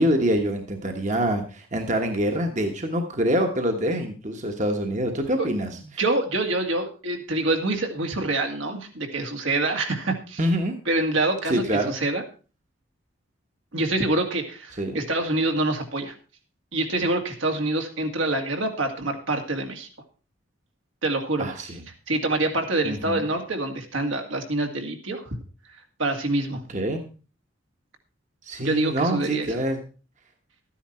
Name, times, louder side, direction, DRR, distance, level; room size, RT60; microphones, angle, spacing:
voice 1, 0.0-5.8 10.4-10.7 11.5-11.9 14.8-15.0 21.4-21.8 22.8-23.3 26.7-27.0 28.4-29.8, right 1 dB, 35° right, 4 dB, 1.3 m, -25 dB
voice 2, 6.0-10.4 10.9-12.2 13.7-16.1 16.7-19.9 21.0-21.5 22.1-25.4 26.0-26.6 28.6-29.5, right 2 dB, 75° right, 3 dB, 2.2 m, -26 dB
13.0 x 10.0 x 4.4 m, 0.36 s
head